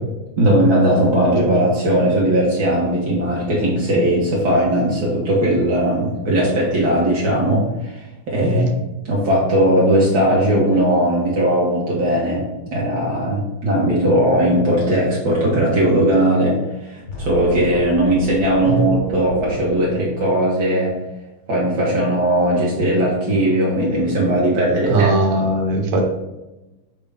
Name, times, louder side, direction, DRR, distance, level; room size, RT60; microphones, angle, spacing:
voice 1, 0.4-8.7 9.0-12.4 12.7-20.9 21.5-25.1 25.4-25.5, right 1 dB, 55° right, -5 dB, 1.4 m, -18 dB
sound 1, 17.1-20.5, right 1 dB, 80° left, 0.6 m, -32 dB
voice 2, 24.8-26.0, right 2 dB, 85° right, 3 dB, 1.7 m, -19 dB
6.3 x 2.2 x 3.4 m, 1.0 s
omnidirectional pair, 2.4 m